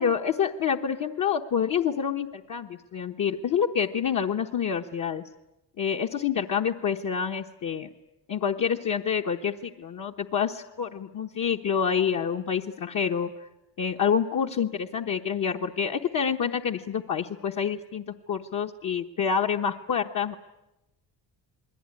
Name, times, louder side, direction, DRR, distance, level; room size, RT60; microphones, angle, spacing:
voice 1, 0.0-5.2 5.8-7.9 8.3-13.5 13.8-20.4, left 7 dB, 45° left, 1 dB, 1.1 m, -27 dB
28.5 x 21.5 x 9.8 m, 0.98 s
cardioid pair, 155°, 42 cm